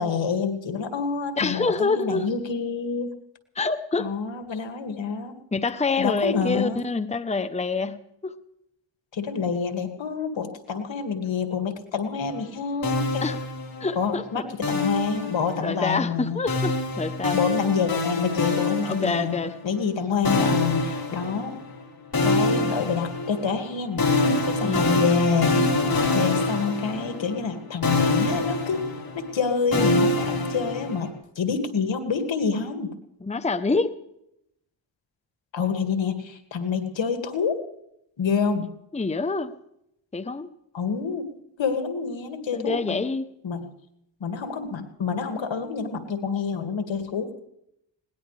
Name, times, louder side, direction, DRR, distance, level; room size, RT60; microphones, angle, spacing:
voice 1, 0.0-3.1 4.0-5.4 6.0-6.9 9.1-13.2 14.0-16.4 17.3-21.6 22.2-24.1 24.5-25.6 26.1-28.8 29.1-32.9 35.5-37.5 38.2-38.7 40.7-41.3 41.6-43.0 43.4-43.7 44.2-47.3, left 5 dB, 75° left, 6 dB, 2.3 m, -27 dB
voice 2, 1.4-2.3 3.6-4.1 5.5-8.3 13.2-13.4 13.8-14.4 15.6-17.4 18.9-19.5 24.6-25.0 33.2-34.0 38.9-39.5 40.1-40.5 42.5-43.3, left 4 dB, 15° left, 11 dB, 0.8 m, -26 dB
sound 1, 12.8-14.1 14.6-15.8 16.5-19.6 20.2-21.8 22.1-27.6 27.8-31.1, left 2 dB, 50° left, 3.9 m, -25 dB
21.5 x 18.5 x 3.4 m, 0.78 s
cardioid pair, 65°, 45 cm